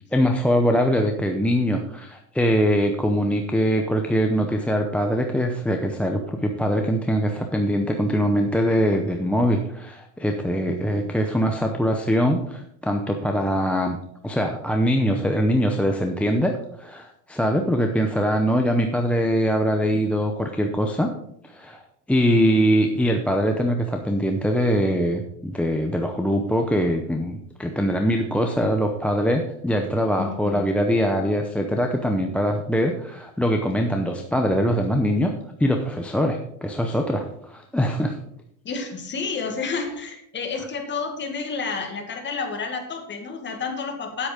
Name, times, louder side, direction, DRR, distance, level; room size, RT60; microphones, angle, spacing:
voice 1, 0.1-14.0 14.2-16.5 16.8-21.1 21.5-21.8 22.1-35.3 35.6-38.2, equal, 5° left, 2 dB, 0.7 m, -22 dB
voice 2, 10.7-11.1 30.2-30.7 38.6-44.3, left 4 dB, 25° left, 4 dB, 2.1 m, -30 dB
9.1 x 8.3 x 5.1 m, 0.73 s
supercardioid pair, 135°, 42 cm